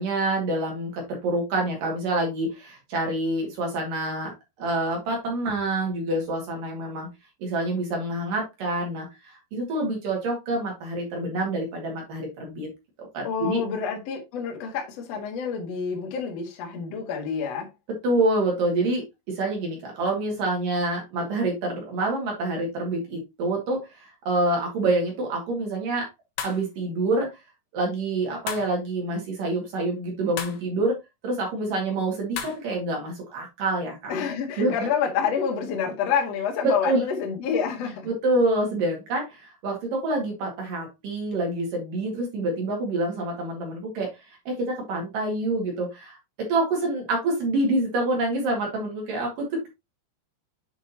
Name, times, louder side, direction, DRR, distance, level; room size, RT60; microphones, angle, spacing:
voice 1, 0.0-7.1 7.4-12.7 13.0-13.6 18.0-26.1 26.4-27.3 27.7-31.0 31.2-34.1 34.6-34.9 36.6-37.0 38.1-49.7, right 2 dB, 55° right, 3.0 m, -27 dB
voice 2, 13.2-17.7 34.1-38.1, left 7 dB, 55° left, 1.9 m, -28 dB
sound 1, 26.4-26.7 28.5-28.8 30.4-30.6 32.4-32.6, left 8 dB, 75° left, 3.2 m, -33 dB
8.1 x 5.0 x 2.8 m
omnidirectional pair, 5.2 m